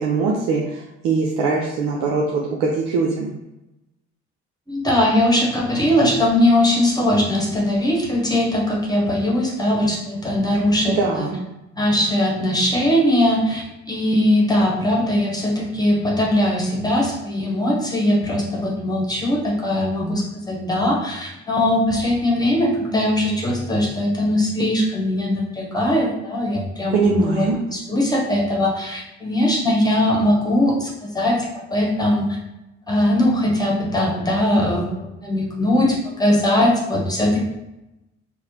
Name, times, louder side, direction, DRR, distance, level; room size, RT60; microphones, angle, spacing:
voice 1, 0.0-3.4 10.9-11.4 26.9-27.6, right 4 dB, 60° right, -1 dB, 0.6 m, -22 dB
voice 2, 4.7-11.3 11.8-27.4 27.7-32.4 32.9-37.5, left 1 dB, 10° left, -3 dB, 1.2 m, -20 dB
4.7 x 2.0 x 2.9 m, 0.94 s
figure-of-eight pair, 50°, 35 cm